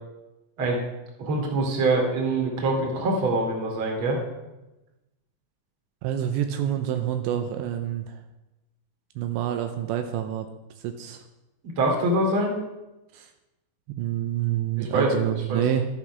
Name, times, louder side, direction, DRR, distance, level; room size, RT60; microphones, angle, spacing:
voice 1, 1.2-4.2 11.6-12.6 14.8-15.6, right 2 dB, 35° right, 0 dB, 2.7 m, -24 dB
voice 2, 6.0-8.2 9.2-10.5 10.8-11.2 13.1-13.3 13.9-15.9, right 11 dB, 80° right, 6 dB, 2.9 m, -27 dB
12.0 x 10.5 x 6.1 m, 1.0 s
omnidirectional pair, 5.2 m